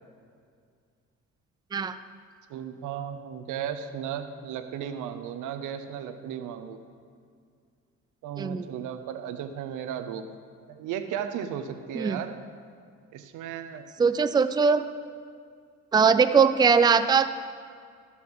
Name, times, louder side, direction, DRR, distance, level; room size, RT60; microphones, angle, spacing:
voice 1, 2.5-6.8 8.2-10.2 10.7-12.4 13.1-13.9, right 9 dB, 90° right, 9 dB, 0.8 m, -35 dB
voice 2, 14.0-14.9 15.9-17.3, right 5 dB, 15° right, 11 dB, 0.4 m, -21 dB
13.5 x 5.7 x 6.1 m, 2.2 s
cardioid pair, 90°, 30 cm